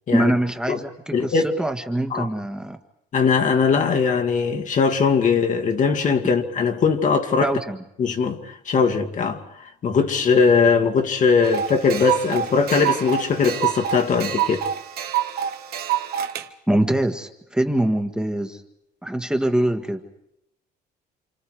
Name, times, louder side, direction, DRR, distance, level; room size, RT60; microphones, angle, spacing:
voice 1, 0.1-2.8 7.4-7.8 16.7-18.6 19.0-20.0, right 1 dB, 5° right, 1.6 m, -23 dB
voice 2, 1.1-1.5 2.1-2.3 3.1-7.5 8.0-9.4 9.8-14.6, left 5 dB, 50° left, 2.2 m, -20 dB
sound 1, 11.4-16.4, right 10 dB, 65° right, 1.5 m, -26 dB
29.0 x 26.5 x 4.9 m
cardioid pair, 110°, 17 cm